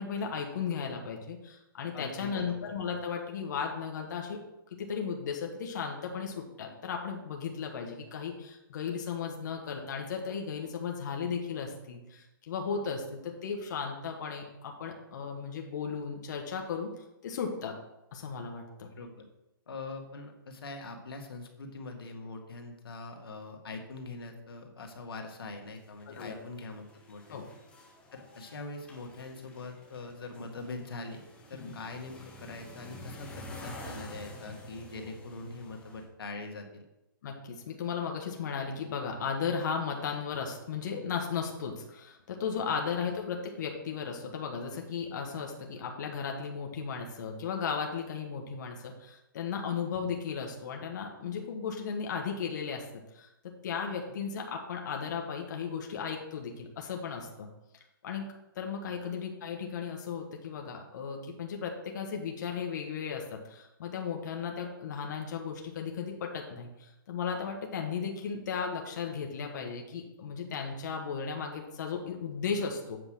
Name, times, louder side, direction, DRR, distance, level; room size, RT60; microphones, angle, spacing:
voice 1, 0.0-4.4 4.8-17.7 18.1-18.9 26.1-26.4 27.3-27.5 31.5-31.8 37.2-52.8 53.1-57.5 58.0-73.0, left 6 dB, 55° left, 2 dB, 1.3 m, -35 dB
voice 2, 1.9-2.7 19.0-19.2 19.7-27.4 28.1-31.2 31.5-36.8, left 3 dB, 90° left, 3 dB, 1.8 m, -43 dB
sound 1, 25.7-36.0, left 1 dB, 10° left, 1.4 m, -49 dB
8.1 x 4.9 x 6.1 m, 0.91 s
hypercardioid pair, 160°, 12 cm